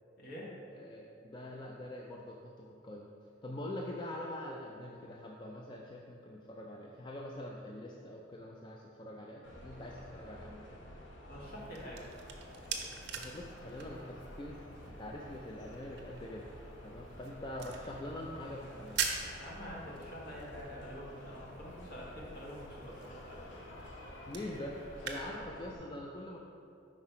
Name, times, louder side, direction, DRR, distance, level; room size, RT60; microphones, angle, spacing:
voice 1, 0.2-0.5 11.2-12.0 19.4-23.5, equal, 55° left, -5 dB, 1.5 m, -46 dB
voice 2, 0.7-3.1 3.4-10.6 13.2-16.4 16.8-19.0 24.3-26.4, left 1 dB, 25° left, -1 dB, 0.3 m, -44 dB
sound 1, 9.4-25.8, left 1 dB, 80° left, 0.8 m, -50 dB
sound 2, 11.4-25.2, right 6 dB, 60° right, 0.7 m, -45 dB
4.8 x 4.6 x 5.7 m, 2.6 s
head